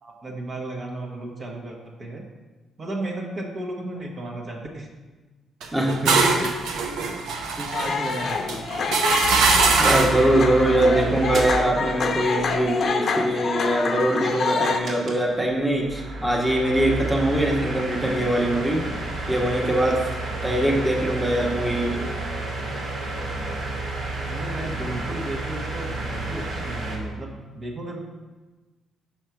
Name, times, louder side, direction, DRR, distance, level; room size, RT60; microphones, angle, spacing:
voice 1, 0.0-2.2 2.8-4.9 6.1-6.5 7.6-8.6 10.1-11.3 11.7-11.8 20.3-20.8 24.3-28.0, right 1 dB, 45° right, 0 dB, 1.2 m, -34 dB
sound 1, 5.6-10.3, right 4 dB, 85° right, 0.8 m, -22 dB
voice 2, 5.7-6.2 9.8-18.8 19.3-20.0 20.4-22.0, right 1 dB, 10° right, -1 dB, 1.2 m, -22 dB
sound 2, 7.7-14.8, left 5 dB, 60° left, 0.7 m, -27 dB
sound 3, 9.2-12.6 14.8-15.2 15.7-27.0, right 3 dB, 65° right, 2.0 m, -31 dB
6.1 x 4.4 x 5.8 m, 1.2 s
cardioid pair, 90°, 0 cm